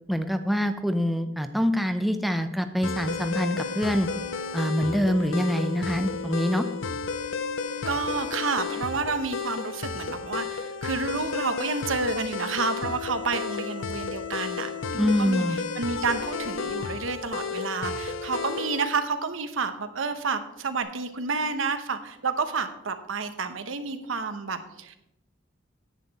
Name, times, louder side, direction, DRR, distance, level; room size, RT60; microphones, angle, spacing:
voice 1, 0.1-4.1 4.5-6.7 15.0-15.6, equal, ahead, 8 dB, 0.6 m, -25 dB
sound 1, 2.8-18.9, left 5 dB, 75° left, 0.7 m, -32 dB
voice 2, 7.9-25.0, right 4 dB, 90° right, 9 dB, 0.9 m, -30 dB
10.0 x 8.9 x 4.1 m, 0.87 s
head